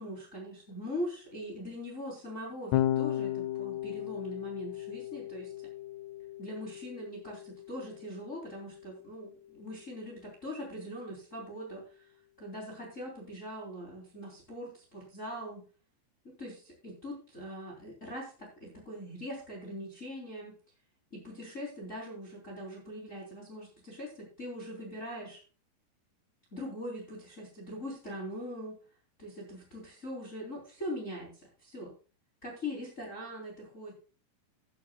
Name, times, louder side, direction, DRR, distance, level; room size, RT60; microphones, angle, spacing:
voice 1, 0.0-5.5 6.4-12.1 12.4-15.6 16.4-20.5 21.1-25.4 26.5-28.8 29.2-31.9 32.4-33.9, equal, 20° left, -2 dB, 3.5 m, -41 dB
Electric guitar / Bass guitar, 2.7-9.1, left 13 dB, 90° left, 3.0 m, -35 dB
15.0 x 11.0 x 2.3 m, 0.36 s
omnidirectional pair, 4.9 m